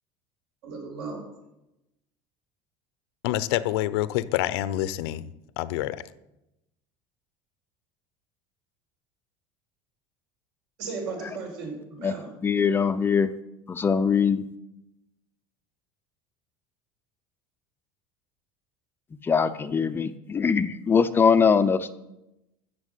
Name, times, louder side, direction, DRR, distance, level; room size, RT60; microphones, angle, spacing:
voice 1, 0.6-1.2 10.8-12.3, right 4 dB, 75° right, 5.7 m, -35 dB
voice 2, 3.2-5.3 5.6-6.0, left 14 dB, 85° left, 0.8 m, -27 dB
voice 3, 12.4-13.3 13.7-14.4 19.3-21.9, left 6 dB, 15° left, 0.5 m, -22 dB
14.5 x 6.9 x 8.3 m
cardioid pair, 160°, 13 cm